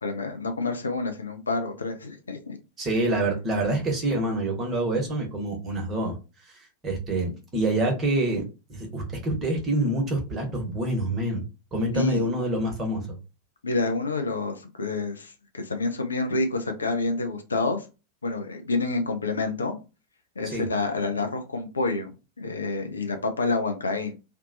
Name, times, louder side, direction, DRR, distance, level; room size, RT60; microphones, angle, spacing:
voice 1, 0.0-2.6 11.9-12.3 13.6-17.8 18.2-19.8 20.4-22.1 22.4-24.1, left 3 dB, 75° left, 6 dB, 0.5 m, -28 dB
voice 2, 2.8-6.2 6.4-6.5 6.8-8.4 8.7-11.4 11.7-13.2 20.4-20.6, right 1 dB, 25° right, 1 dB, 1.1 m, -26 dB
2.6 x 2.2 x 2.6 m, 0.29 s
figure-of-eight pair, 90°, 0 cm